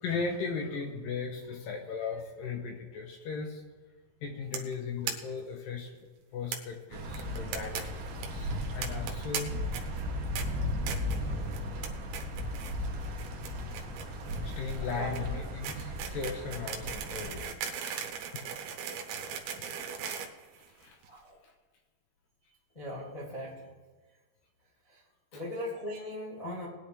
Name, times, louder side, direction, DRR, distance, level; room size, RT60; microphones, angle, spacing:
voice 1, 0.0-3.6 4.2-5.9 6.3-8.0 8.3-9.6 14.4-17.9 18.3-18.4 19.6-19.7 20.7-21.0 25.3-25.4, left 5 dB, 70° left, 2 dB, 2.3 m, -37 dB
sound 1, 4.5-4.7 5.1-5.2 5.4-5.5 5.7-5.8 6.5-6.6 7.1-7.8 8.1-8.3 8.8-9.4 9.7-10.0 10.4-10.5 10.9-11.2 11.5-11.9 12.1-12.7 13.0-21.1, right 7 dB, 90° right, 3.4 m, -38 dB
sound 2, 6.9-17.4, left 1 dB, 60° right, 2.6 m, -36 dB
voice 2, 14.8-15.2 21.0-21.4 22.7-23.6 24.9-25.0 25.3-26.7, equal, 25° left, -7 dB, 0.8 m, -39 dB
20.5 x 9.9 x 3.4 m, 1.3 s
omnidirectional pair, 5.0 m